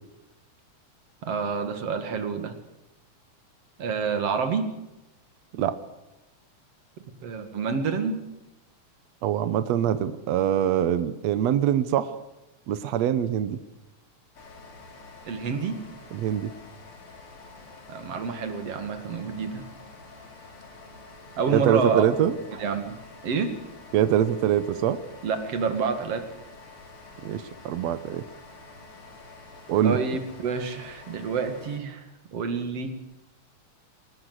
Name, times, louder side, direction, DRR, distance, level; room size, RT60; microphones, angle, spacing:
voice 1, 1.2-2.5 3.8-4.7 7.2-8.2 15.2-15.8 17.9-19.7 21.4-22.0 22.5-23.6 25.2-26.2 29.8-32.0 32.3-33.0, right 5 dB, 50° right, 7 dB, 3.0 m, -28 dB
voice 2, 9.2-12.2 12.7-13.6 16.1-16.5 21.5-22.3 23.9-25.0 27.2-28.2 29.7-30.0, right 10 dB, 70° right, 12 dB, 1.9 m, -24 dB
sound 1, 14.3-31.8, left 3 dB, 45° left, 3.8 m, -47 dB
21.0 x 18.0 x 7.9 m, 0.97 s
omnidirectional pair, 3.6 m